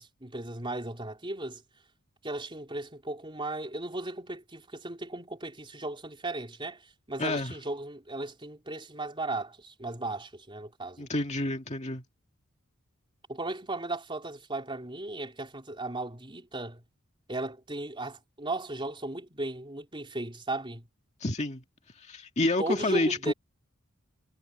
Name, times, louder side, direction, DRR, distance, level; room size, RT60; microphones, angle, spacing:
voice 1, 0.0-1.6 2.2-6.8 7.1-11.1 13.3-16.8 17.3-20.9 22.6-23.3, right 2 dB, 25° right, 3.9 m, -36 dB
voice 2, 7.2-7.5 11.0-12.0 21.2-21.6 22.0-23.3, left 2 dB, 30° left, 2.1 m, -29 dB
head